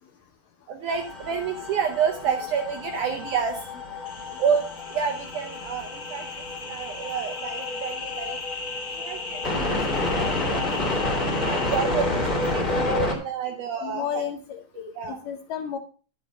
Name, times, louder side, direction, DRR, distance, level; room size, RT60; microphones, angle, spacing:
voice 1, 0.7-3.7 4.4-8.4 8.9-9.8 10.3-10.7 11.3-14.2 15.0-15.2, right 7 dB, 75° right, 4 dB, 1.9 m, -29 dB
sound 1, 0.9-13.1, left 2 dB, 20° left, 1.7 m, -29 dB
sound 2, 4.0-12.6, left 3 dB, 35° left, 1.6 m, -37 dB
voice 2, 9.5-9.9 12.6-13.1 13.8-15.8, left 9 dB, 75° left, 6 dB, 2.0 m, -34 dB
11.0 x 7.2 x 4.9 m, 0.37 s
omnidirectional pair, 4.6 m